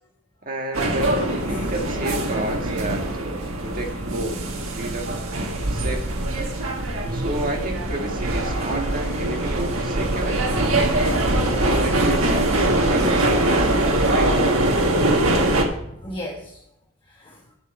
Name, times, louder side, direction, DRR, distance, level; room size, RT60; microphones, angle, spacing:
voice 1, 0.5-4.4 4.7-6.2 7.1-10.7 11.5-13.7 14.0-14.3, right 1 dB, 40° right, 2 dB, 1.7 m, -31 dB
sound 1, 0.7-15.6, right 1 dB, 90° right, 1.7 m, -22 dB
voice 2, 15.1-16.6 17.1-17.4, left 1 dB, 25° left, -2 dB, 1.1 m, -36 dB
11.5 x 6.6 x 4.3 m, 0.80 s
head